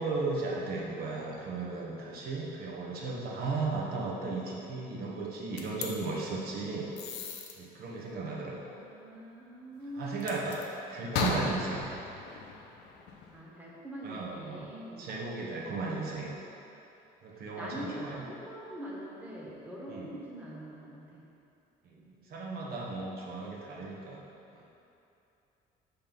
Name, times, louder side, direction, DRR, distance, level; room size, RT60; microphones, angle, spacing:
voice 1, 0.0-6.9 7.6-8.7 10.0-10.6 10.9-11.9 14.0-14.7 15.0-16.3 17.2-18.1 19.9-20.0 21.8-22.0 22.3-24.2 24.5-24.6, right 3 dB, 65° right, -4 dB, 1.4 m, -35 dB
sound 1, 5.6-5.9 7.0-7.5 10.2-10.7 11.1-13.4, left 4 dB, 85° left, 0.8 m, -35 dB
voice 2, 8.3-10.3 13.3-15.1 15.6-16.3 17.3-21.2 21.9-22.5, equal, 10° right, -5 dB, 1.5 m, -44 dB
5.7 x 4.3 x 5.5 m, 2.8 s
cardioid pair, 110°, 17 cm